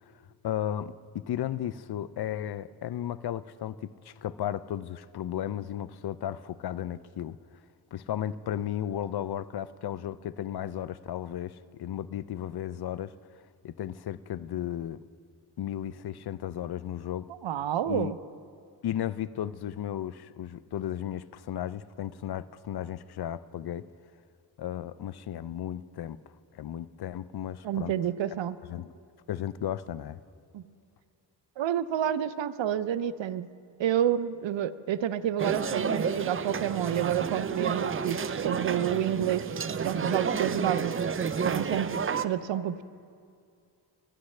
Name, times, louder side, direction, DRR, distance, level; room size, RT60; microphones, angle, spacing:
voice 1, 0.4-7.4 7.9-13.1 13.6-15.0 15.6-17.3 17.9-18.1 18.8-23.9 24.6-26.2 26.5-27.9 28.7-28.9 29.3-30.2, left 11 dB, 60° left, 16 dB, 0.5 m, -34 dB
voice 2, 17.4-18.2 27.6-28.6 30.5-30.6 31.6-33.5 33.8-39.5 39.8-41.0 41.4-41.9 42.2-42.8, right 10 dB, 80° right, 15 dB, 0.6 m, -29 dB
sound 1, 35.4-42.3, right 6 dB, 30° right, 0.4 m, -30 dB
23.0 x 11.5 x 3.3 m, 2.4 s
cardioid pair, 85°, 44 cm